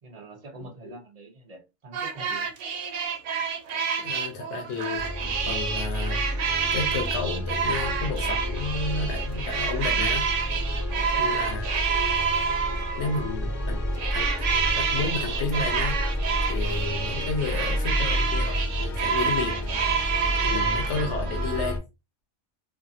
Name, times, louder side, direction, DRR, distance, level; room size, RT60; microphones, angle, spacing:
voice 1, 0.0-2.5 10.9-11.2, right 3 dB, 45° right, 0.5 m, -45 dB
voice 2, 0.6-1.0 4.0-6.2 6.7-10.3 11.2-11.9 13.0-13.8 14.1-14.3 14.8-16.0 16.5-19.6 20.4-21.8, left 4 dB, 60° left, 1.0 m, -32 dB
sound 1, 1.9-13.3 13.9-21.7, right 6 dB, 70° right, 0.9 m, -28 dB
sound 2, 4.9-21.8, equal, 35° left, 0.7 m, -30 dB
2.6 x 2.5 x 2.5 m
omnidirectional pair, 1.4 m